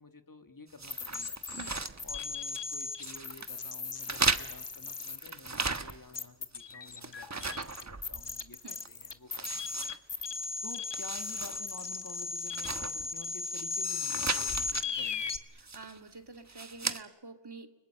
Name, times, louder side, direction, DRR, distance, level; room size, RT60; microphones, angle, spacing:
voice 1, 0.0-1.4 2.0-9.8 10.0-15.5, left 3 dB, 45° left, 7 dB, 2.1 m, -51 dB
sound 1, 0.8-2.7 3.0-3.5 4.0-6.2 6.5-8.4 8.8-8.9 9.3-10.5 10.8-11.6 11.9-12.0 12.4-13.6 14.0-14.9 15.6-16.0 16.5-17.0, right 3 dB, 35° right, 1.3 m, -36 dB
sound 2, 0.9-15.4, left 4 dB, 65° left, 1.5 m, -37 dB
voice 2, 15.5-17.7, right 3 dB, 60° right, 6 dB, 2.6 m, -48 dB
30.0 x 20.0 x 9.0 m, 0.98 s
wide cardioid pair, 40°, 46 cm